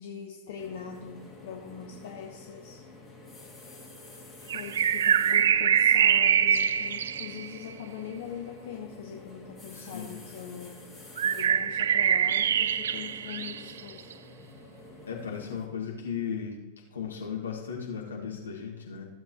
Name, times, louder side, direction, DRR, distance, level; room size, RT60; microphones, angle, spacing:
voice 1, 0.0-2.8 4.5-10.9 11.2-14.1, left 7 dB, 55° left, 1 dB, 1.1 m, -42 dB
sound 1, 0.6-15.7, left 2 dB, 5° left, 2.2 m, -49 dB
sound 2, 4.5-7.7 11.2-14.1, right 8 dB, 65° right, 0.3 m, -24 dB
voice 2, 9.7-10.2 15.1-16.6 16.9-19.1, left 7 dB, 70° left, -1 dB, 1.8 m, -36 dB
15.0 x 7.5 x 3.0 m, 1.1 s
figure-of-eight pair, 90°, 0 cm